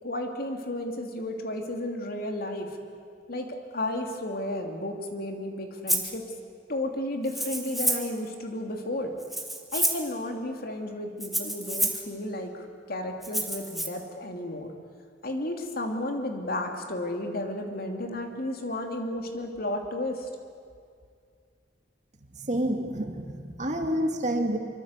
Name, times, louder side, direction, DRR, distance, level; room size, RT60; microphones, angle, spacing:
voice 1, 0.0-2.8 3.3-6.2 6.7-9.1 9.7-14.7 15.2-20.3, left 1 dB, 55° left, 3 dB, 3.0 m, -33 dB
Rattle (instrument), 5.9-6.1 7.2-8.2 9.2-10.1 11.2-12.1 13.2-13.9, right 1 dB, ahead, 2.1 m, -29 dB
voice 2, 22.3-24.6, right 1 dB, 40° right, 4 dB, 2.4 m, -28 dB
25.0 x 24.5 x 8.3 m, 2.2 s
head